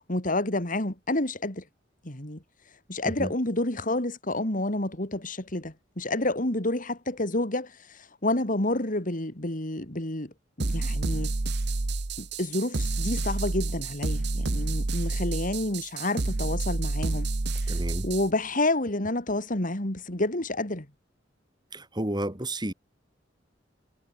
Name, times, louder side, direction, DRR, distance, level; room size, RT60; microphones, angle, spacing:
voice 1, 0.1-1.6 2.0-2.4 2.9-11.3 12.2-17.3 17.7-20.9, left 2 dB, 45° left, 3.5 m, -29 dB
sound 1, 10.6-18.3, right 2 dB, 65° right, 1.1 m, -29 dB
voice 2, 17.7-18.1 21.7-22.7, right 1 dB, 25° right, 3.1 m, -31 dB
head